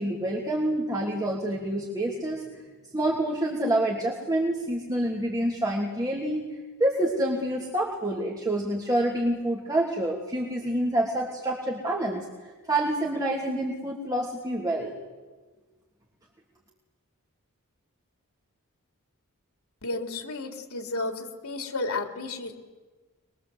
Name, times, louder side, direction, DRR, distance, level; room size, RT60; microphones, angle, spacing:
voice 1, 0.0-2.4 2.9-6.5 6.8-12.2 12.7-14.9, right 1 dB, 15° right, -3 dB, 3.2 m, -27 dB
voice 2, 19.8-22.5, left 2 dB, 75° left, 4 dB, 3.8 m, -32 dB
26.5 x 22.5 x 8.2 m, 1.3 s
head